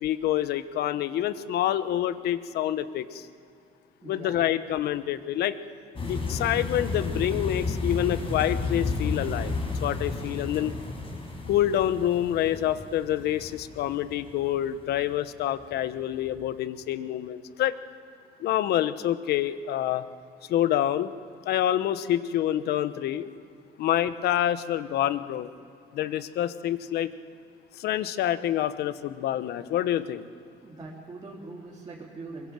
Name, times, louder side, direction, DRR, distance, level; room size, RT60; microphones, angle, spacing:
voice 1, 0.0-3.3 4.0-5.5 6.0-10.7 11.5-17.7 18.4-20.0 20.5-21.1 21.4-23.3 23.8-25.5 25.9-27.1 27.7-30.3, left 12 dB, 75° left, 13 dB, 1.0 m, -27 dB
voice 2, 4.0-4.6 30.6-32.5, right 3 dB, 25° right, -5 dB, 3.6 m, -42 dB
sound 1, 6.0-15.0 15.5-15.8 16.0-16.2, left 3 dB, 30° left, 6.0 m, -32 dB
23.5 x 22.0 x 7.5 m, 2.5 s
cardioid pair, 110°, 17 cm